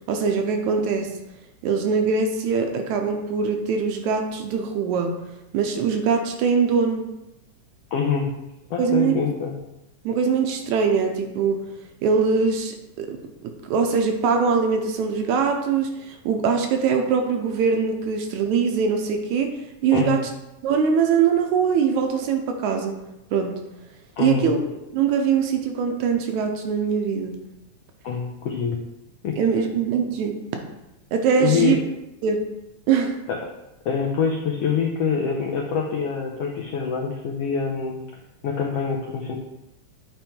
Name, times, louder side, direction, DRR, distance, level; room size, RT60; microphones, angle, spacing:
voice 1, 0.1-1.1 1.6-5.2 5.5-7.1 8.8-9.2 10.1-11.6 12.0-20.2 20.6-23.0 23.3-23.6 24.2-24.6 24.9-27.4 29.4-30.4 31.1-31.8 32.2-32.4 32.9-33.2, right 6 dB, 75° right, 4 dB, 2.0 m, -22 dB
voice 2, 7.9-8.4 8.7-9.6 19.9-20.2 24.2-24.5 28.0-28.8 29.2-29.4 31.3-31.8 33.3-33.5 33.8-38.0 38.4-39.3, left 6 dB, 85° left, 0 dB, 1.3 m, -25 dB
9.0 x 3.7 x 4.3 m, 0.93 s
omnidirectional pair, 3.6 m